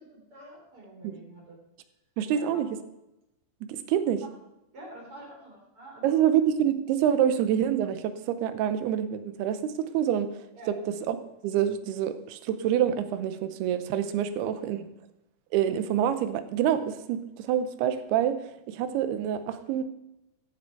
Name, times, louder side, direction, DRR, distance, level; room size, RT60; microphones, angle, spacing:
voice 1, 0.0-1.6 2.2-2.6 4.2-4.3 4.7-6.2 10.5-10.7 14.5-14.9, right 1 dB, 35° right, -3 dB, 4.3 m, -47 dB
voice 2, 2.2-2.7 3.7-4.2 6.0-10.3 11.1-11.2 11.4-14.8 15.5-18.4 18.7-19.8, right 10 dB, 80° right, 11 dB, 2.7 m, -26 dB
14.0 x 7.0 x 4.6 m, 0.89 s
omnidirectional pair, 4.6 m